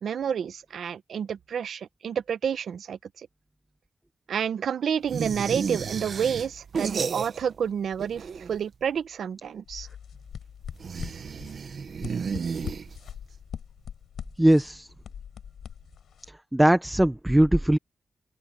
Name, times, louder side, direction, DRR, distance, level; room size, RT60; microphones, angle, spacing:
voice 1, 0.0-3.3 4.3-9.9, right 8 dB, 70° right, 0.8 m, -29 dB
sound 1, 5.1-7.7 7.9-8.7 10.7-13.3, right 6 dB, 50° right, 1.1 m, -32 dB
sound 2, 9.7-16.3, left 8 dB, 85° left, 6.4 m, -42 dB
voice 2, 14.4-14.9 16.5-17.8, right 1 dB, 5° right, 0.8 m, -20 dB
open air
wide cardioid pair, 165°, 0 cm